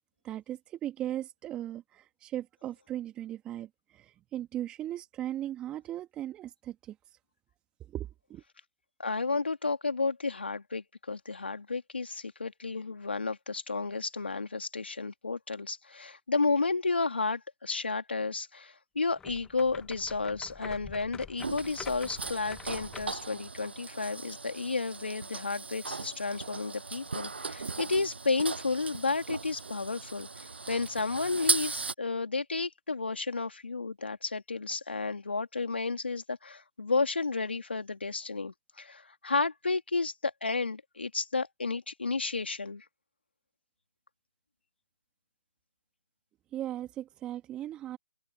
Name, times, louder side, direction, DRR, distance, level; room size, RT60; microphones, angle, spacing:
voice 1, 0.2-7.0 7.9-8.4 46.5-48.0, right 12 dB, 15° right, 1.8 m, -38 dB
voice 2, 9.0-42.8, left 3 dB, 80° left, 3.1 m, -32 dB
sound 1, 19.2-23.3, left 8 dB, 10° left, 1.2 m, -47 dB
sound 2, 21.4-31.9, right 4 dB, 75° right, 6.8 m, -37 dB
figure-of-eight pair, 140°, 6 cm